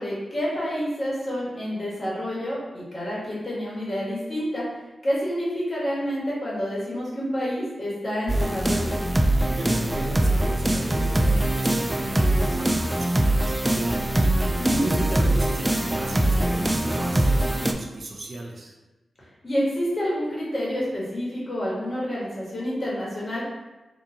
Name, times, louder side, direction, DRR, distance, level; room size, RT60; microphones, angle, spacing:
voice 1, 0.0-4.6 5.0-8.9 14.6-14.9 19.4-23.4, equal, 40° left, -6 dB, 1.5 m, -28 dB
sound 1, 8.3-17.7, right 1 dB, 15° right, 0.3 m, -23 dB
voice 2, 9.5-18.7, right 2 dB, 60° right, 0 dB, 0.6 m, -36 dB
3.8 x 2.7 x 2.8 m, 1.1 s
cardioid pair, 65°, 0 cm